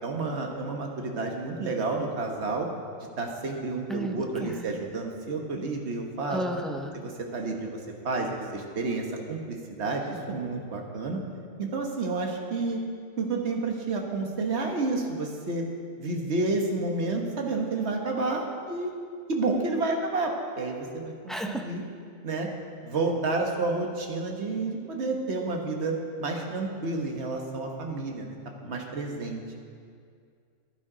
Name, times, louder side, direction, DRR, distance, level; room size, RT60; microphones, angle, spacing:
voice 1, 0.0-2.7 3.2-6.4 6.9-7.8 8.0-11.2 11.6-12.8 13.2-15.6 16.0-18.9 19.3-21.8 22.2-22.5 22.8-28.4 28.6-29.4, right 3 dB, 65° right, 1 dB, 1.5 m, -30 dB
voice 2, 3.9-4.7 6.3-6.9 21.3-21.7, equal, ahead, 2 dB, 0.6 m, -33 dB
11.5 x 10.5 x 5.0 m, 2.3 s
omnidirectional pair, 1.2 m